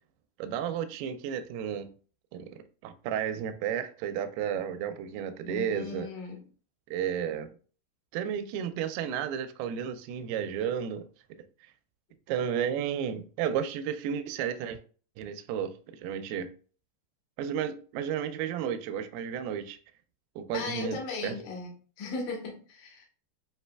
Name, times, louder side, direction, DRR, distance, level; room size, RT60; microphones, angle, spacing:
voice 1, 0.4-1.9 2.3-6.1 6.9-7.5 8.1-11.1 12.3-14.8 15.2-16.5 17.4-19.8 20.4-21.4, right 8 dB, 85° right, 2.2 m, -32 dB
voice 2, 5.5-6.4 20.5-21.7 22.0-23.1, left 4 dB, 70° left, 2.3 m, -37 dB
7.4 x 2.6 x 2.2 m
omnidirectional pair, 4.8 m